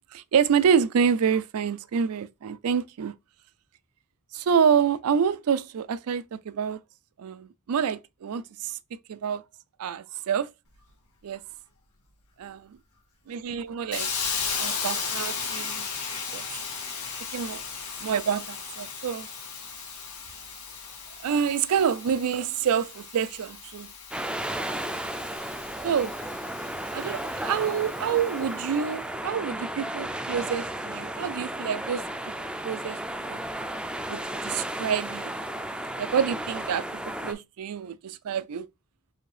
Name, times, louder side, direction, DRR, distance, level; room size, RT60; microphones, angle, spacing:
voice 1, 0.1-3.1 4.3-6.8 7.2-9.4 9.8-10.5 11.2-11.4 12.4-12.8 13.3-14.1 14.6-15.9 16.3-16.4 17.3-17.6 18.0-19.3 21.2-23.9 24.7-24.8 25.8-26.1 26.9-32.1 32.6-33.4 34.1-35.3 36.0-36.9 37.2-38.7, right 7 dB, 80° right, 0.4 m, -27 dB
Hiss, 13.9-28.7, left 5 dB, 80° left, 1.7 m, -36 dB
sound 1, 24.1-37.3, right 1 dB, 5° right, 0.3 m, -34 dB
4.7 x 2.6 x 3.3 m
head